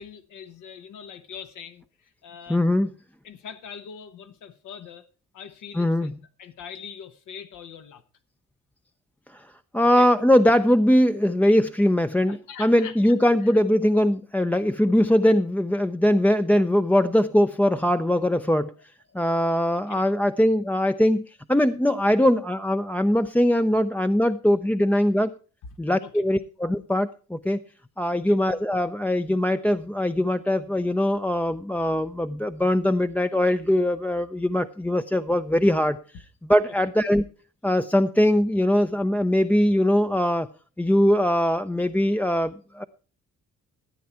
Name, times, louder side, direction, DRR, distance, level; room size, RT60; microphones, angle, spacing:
voice 1, 0.0-2.6 3.2-5.1 5.3-8.0 9.8-10.1 12.3-13.1 13.4-13.6 19.1-19.2 19.7-20.1 26.0-26.2 28.1-28.4 36.6-36.7, left 7 dB, 75° left, 1.2 m, -43 dB
voice 2, 2.5-2.9 5.8-6.1 9.3-9.5 9.7-18.7 19.1-21.2 21.5-25.3 25.8-27.6 28.0-36.2 36.5-37.2 37.6-40.5 40.8-42.8, left 1 dB, 5° left, 0.5 m, -21 dB
14.0 x 8.5 x 4.4 m
cardioid pair, 90°, 30 cm